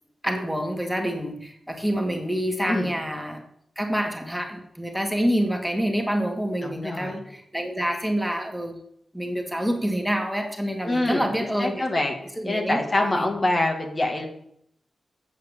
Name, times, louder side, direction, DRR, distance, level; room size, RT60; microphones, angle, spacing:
voice 1, 0.2-3.4 3.8-8.8 9.1-11.8 12.4-13.3, equal, ahead, 3 dB, 2.2 m, -27 dB
voice 2, 6.6-7.2 10.8-11.3 11.6-12.2 12.4-14.3, left 2 dB, 40° left, 2 dB, 2.3 m, -25 dB
8.5 x 6.5 x 6.9 m, 0.71 s
supercardioid pair, 40°, 0 cm